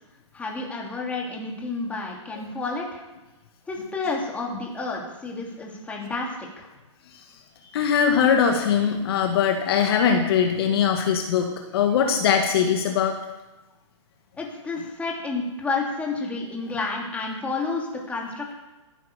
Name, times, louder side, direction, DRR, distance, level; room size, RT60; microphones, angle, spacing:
voice 1, 0.3-3.0 3.7-6.7 14.4-18.5, left 3 dB, 10° left, -2 dB, 3.0 m, -30 dB
voice 2, 7.7-13.1, left 7 dB, 50° left, 4 dB, 1.8 m, -21 dB
14.0 x 10.0 x 6.9 m, 1.1 s
hypercardioid pair, 145°, 16 cm